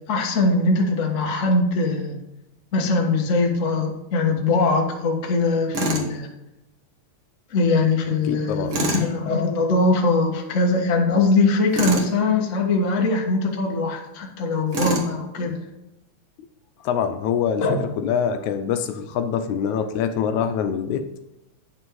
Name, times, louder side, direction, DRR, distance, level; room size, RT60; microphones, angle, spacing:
voice 1, 0.0-2.2 2.7-6.3 7.5-15.6 17.6-17.8, left 3 dB, 40° left, 1 dB, 1.1 m, -21 dB
Tools, 5.7-6.1 8.7-9.1 11.7-12.1 14.7-15.1, right 2 dB, 50° right, 1.9 m, -25 dB
voice 2, 8.2-8.8 16.8-21.1, left 7 dB, 80° left, 8 dB, 2.0 m, -25 dB
9.8 x 6.1 x 4.7 m, 0.92 s
omnidirectional pair, 3.4 m